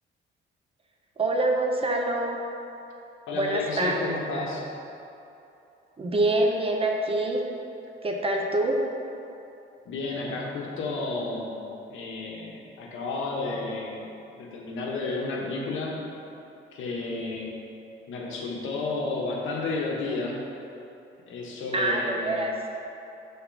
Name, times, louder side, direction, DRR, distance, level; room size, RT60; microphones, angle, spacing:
voice 1, 1.2-2.4 3.3-4.2 6.0-7.5 8.0-8.8 21.7-22.5, right 2 dB, 30° right, 1 dB, 0.8 m, -25 dB
voice 2, 3.3-4.7 9.8-11.5 11.9-14.1 14.4-16.0 16.7-17.6 18.1-20.4 21.3-22.4, left 3 dB, 80° left, -1 dB, 1.1 m, -32 dB
5.9 x 3.7 x 5.8 m, 2.8 s
cardioid pair, 90°, 20 cm